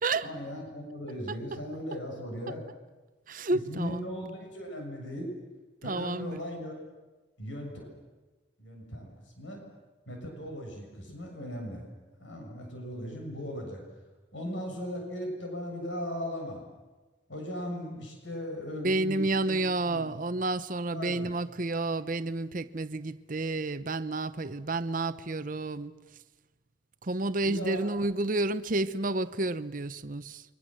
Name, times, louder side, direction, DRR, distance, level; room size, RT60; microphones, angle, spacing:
voice 1, 0.2-2.6 3.5-5.3 5.8-6.8 7.4-8.0 8.6-9.6 10.1-11.8 12.2-13.8 14.3-16.6 17.3-19.5 19.8-20.1 20.9-21.3 27.4-27.9, equal, 75° left, 7.1 m, -38 dB
voice 2, 3.3-4.1 5.8-6.4 18.8-25.9 27.0-30.4, right 2 dB, 45° right, 0.8 m, -30 dB
29.0 x 24.0 x 7.7 m
head